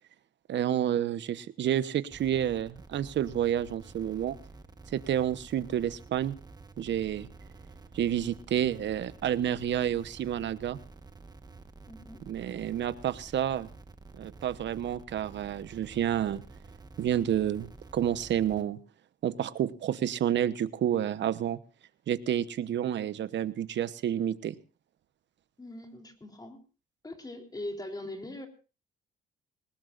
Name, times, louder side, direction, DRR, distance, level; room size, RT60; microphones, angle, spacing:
voice 1, 0.5-4.4 4.9-6.4 6.8-7.3 7.9-10.8 12.3-13.7 14.2-16.4 17.0-18.8 19.2-21.6 22.1-24.5, right 10 dB, 65° right, 14 dB, 1.0 m, -29 dB
sound 1, 2.1-18.6, right 3 dB, 20° right, 1.3 m, -50 dB
voice 2, 11.9-12.2 25.6-26.6 27.0-28.5, left 1 dB, 20° left, 3 dB, 3.7 m, -41 dB
21.5 x 19.5 x 2.5 m, 0.34 s
cardioid pair, 90°, 20 cm